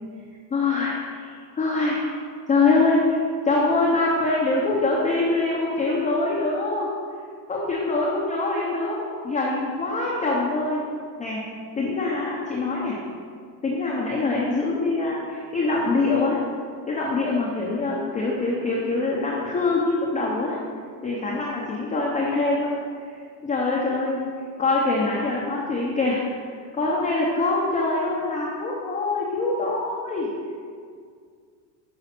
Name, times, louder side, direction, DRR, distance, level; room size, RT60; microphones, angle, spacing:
voice 1, 0.5-2.0 2.5-3.2 3.4-6.9 7.5-10.8 11.2-11.4 11.8-13.0 13.6-16.4 16.9-20.6 21.0-22.7 23.4-24.3 24.6-26.2 26.7-30.3, left 3 dB, 15° left, -4 dB, 0.7 m, -24 dB
6.0 x 5.5 x 5.8 m, 2.1 s
supercardioid pair, 145°, 50 cm